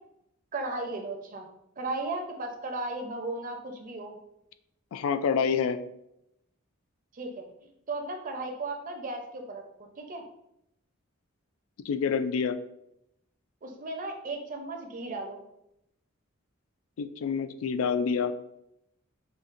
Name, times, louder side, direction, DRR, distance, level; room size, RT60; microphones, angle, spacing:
voice 1, 0.5-1.5 1.8-4.2 7.1-9.6 10.0-10.2 13.6-15.4, right 2 dB, 40° right, 3 dB, 0.6 m, -35 dB
voice 2, 4.9-5.8 11.9-12.6 17.0-18.3, left 6 dB, 75° left, 10 dB, 0.3 m, -27 dB
5.2 x 2.3 x 2.5 m, 0.79 s
head